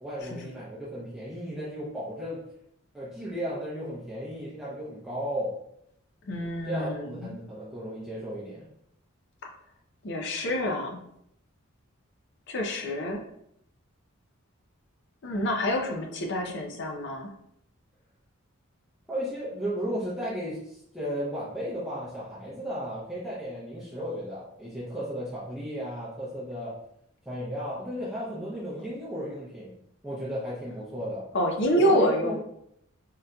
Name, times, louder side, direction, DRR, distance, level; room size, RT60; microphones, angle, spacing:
voice 1, 0.0-2.4 2.9-5.5 6.6-8.7 19.1-26.7 27.3-29.7 30.0-31.2 31.8-32.4, equal, ahead, -10 dB, 0.6 m, -35 dB
voice 2, 6.3-7.4 9.4-9.5 10.0-11.0 12.5-13.2 15.2-17.3 31.3-32.4, equal, 55° left, 2 dB, 0.5 m, -27 dB
3.7 x 2.7 x 2.2 m, 0.74 s
head